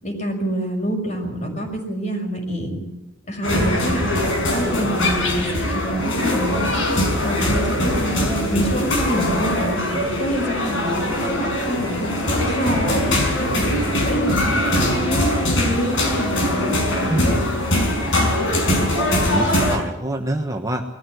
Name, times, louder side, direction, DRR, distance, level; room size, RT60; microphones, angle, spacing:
voice 1, 0.0-2.8 3.3-4.2 4.5-6.8 7.2-9.7 10.2-13.0 13.4-13.7 14.1-17.2, equal, 35° left, 2 dB, 5.9 m, -26 dB
sound 1, 3.4-19.8, left 1 dB, 70° left, 5.5 m, -21 dB
voice 2, 17.1-17.4 18.0-18.3 19.2-20.8, right 1 dB, 15° right, 3 dB, 1.3 m, -26 dB
21.0 x 14.5 x 9.4 m, 0.88 s
head